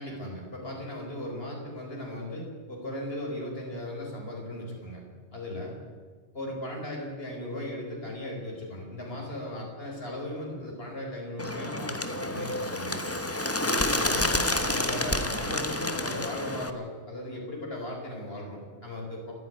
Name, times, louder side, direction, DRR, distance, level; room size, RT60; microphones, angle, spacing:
voice 1, 0.0-5.0 5.3-5.7 6.3-13.0 13.6-19.3, left 1 dB, 60° left, -1 dB, 5.2 m, -37 dB
Bird, 11.4-16.7, left 1 dB, 15° left, 1.1 m, -29 dB
28.5 x 10.0 x 9.5 m, 1.5 s
omnidirectional pair, 1.2 m